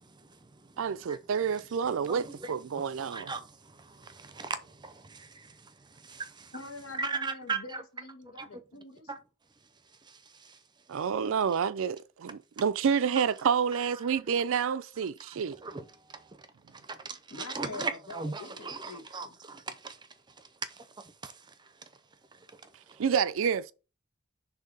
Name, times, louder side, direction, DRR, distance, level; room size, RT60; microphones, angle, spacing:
voice 1, 0.0-1.4 2.0-6.6 6.9-7.8 8.3-8.6 9.1-9.2 10.0-10.6 13.1-13.2 13.7-14.1 15.3-16.5 16.7-20.0 20.3-21.9 22.3-23.0, right 4 dB, 20° right, 0.6 m, -40 dB
voice 2, 0.8-3.3 10.9-15.6 23.0-23.7, right 7 dB, 65° right, 0.4 m, -29 dB
voice 3, 6.5-9.1 17.3-19.3, left 3 dB, 75° left, 1.4 m, -45 dB
6.6 x 2.7 x 5.2 m
head